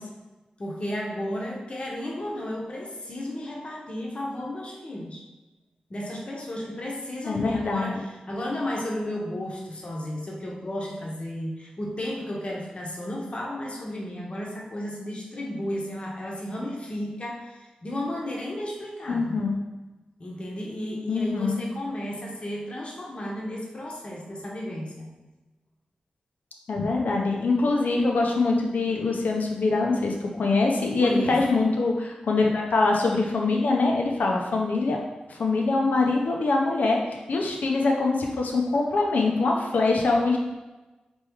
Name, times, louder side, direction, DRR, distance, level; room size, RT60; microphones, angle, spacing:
voice 1, 0.6-5.2 5.9-19.4 20.2-25.1 31.0-31.4, left 1 dB, 45° left, -2 dB, 0.9 m, -33 dB
voice 2, 7.3-7.9 19.1-19.6 21.1-21.6 26.7-35.0 35.3-37.0 37.3-40.4, left 3 dB, 80° left, 0 dB, 0.7 m, -23 dB
4.3 x 3.0 x 3.5 m, 1.1 s
cardioid pair, 55°, 3 cm